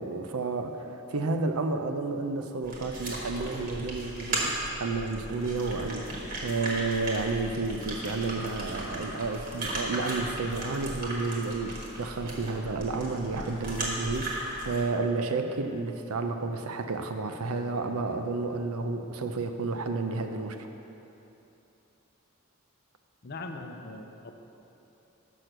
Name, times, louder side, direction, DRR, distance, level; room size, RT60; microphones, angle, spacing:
voice 1, 0.0-20.7, right 3 dB, 80° right, 6 dB, 0.6 m, -31 dB
sound 1, 2.6-14.9, right 1 dB, 40° right, 1.5 m, -36 dB
voice 2, 23.2-24.4, left 2 dB, 45° left, 5 dB, 0.5 m, -40 dB
6.2 x 6.0 x 6.6 m, 3.0 s
head